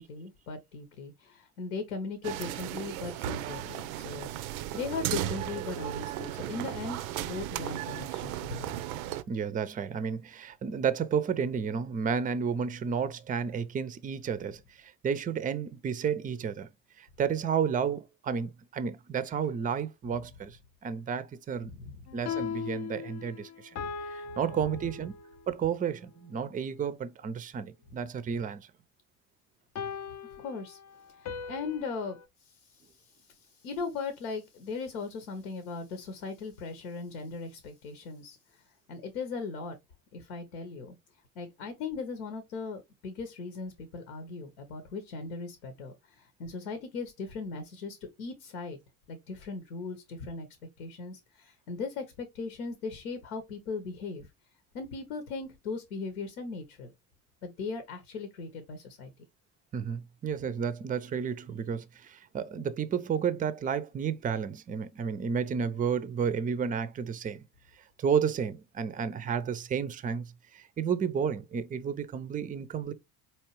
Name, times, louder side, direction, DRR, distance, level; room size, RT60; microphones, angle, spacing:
voice 1, 0.0-4.3 4.7-8.7 21.7-21.9 24.3-24.4 30.4-30.8 31.2-32.2 32.5-32.8 33.4-38.4 38.9-39.8 40.1-40.9 41.3-48.8 49.1-50.5 50.8-54.3 54.7-56.9 57.4-59.1, left 4 dB, 80° left, 0.9 m, -38 dB
sound 1, 2.2-9.2, right 13 dB, 75° right, 0.5 m, -35 dB
voice 2, 9.3-16.7 17.0-20.6 20.8-21.7 22.1-23.8 24.1-25.1 25.5-28.7 59.7-67.5 68.0-70.2 70.5-72.9, right 7 dB, 20° right, 0.5 m, -31 dB
sound 2, 22.1-25.5 29.8-32.3, left 7 dB, 40° left, 0.6 m, -39 dB
4.4 x 2.9 x 3.0 m
hypercardioid pair, 60°, 43 cm